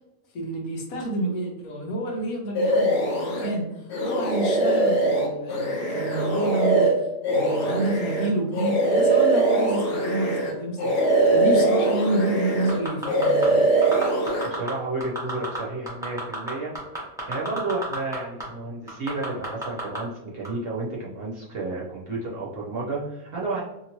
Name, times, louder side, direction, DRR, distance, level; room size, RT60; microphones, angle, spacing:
voice 1, 0.3-6.9 7.3-13.6, right 1 dB, 80° left, 1 dB, 1.2 m, -29 dB
sound 1, 2.5-3.5 3.9-10.5 10.8-12.8 13.0-14.5, right 2 dB, 60° left, 0.6 m, -22 dB
sound 2, 12.7-13.5 13.8-14.7 15.0-15.6 15.9-18.2 18.4-18.5 18.9-20.0 20.4-20.5, right 1 dB, 5° right, 0.8 m, -31 dB
voice 2, 14.4-16.7 17.3-23.6, right 2 dB, 50° right, -5 dB, 0.8 m, -31 dB
2.9 x 2.7 x 2.8 m, 0.93 s
omnidirectional pair, 1.5 m